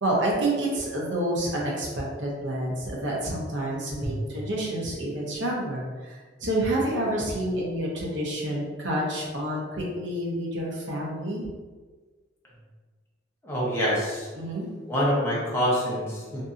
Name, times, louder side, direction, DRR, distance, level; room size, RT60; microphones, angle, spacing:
voice 1, 0.0-6.1 6.4-11.4 14.4-14.7, right 1 dB, 70° right, -3 dB, 0.7 m, -28 dB
voice 2, 13.4-14.3 14.9-16.4, equal, 15° left, -7 dB, 0.8 m, -26 dB
2.6 x 2.6 x 2.4 m, 1.4 s
head